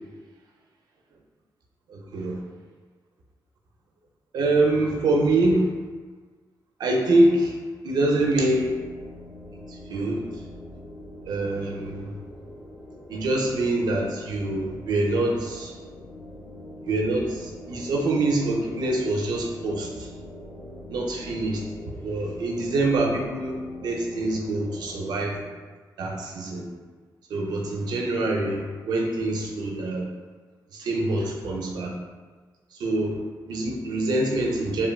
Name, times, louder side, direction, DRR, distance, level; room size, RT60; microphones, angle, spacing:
voice 1, 1.9-2.4 4.3-5.7 6.8-7.6 7.8-8.7 9.7-10.2 11.3-12.1 13.1-15.7 16.8-20.1 20.9-21.6 22.0-25.3 26.0-26.7 27.3-30.1 30.7-31.9 32.7-33.2 33.5-34.9, right 2 dB, 70° right, 0 dB, 0.4 m, -25 dB
sound 1, 8.2-25.5, left 1 dB, 75° left, 0.7 m, -43 dB
3.2 x 2.2 x 2.2 m, 1.4 s
wide cardioid pair, 140°, 7 cm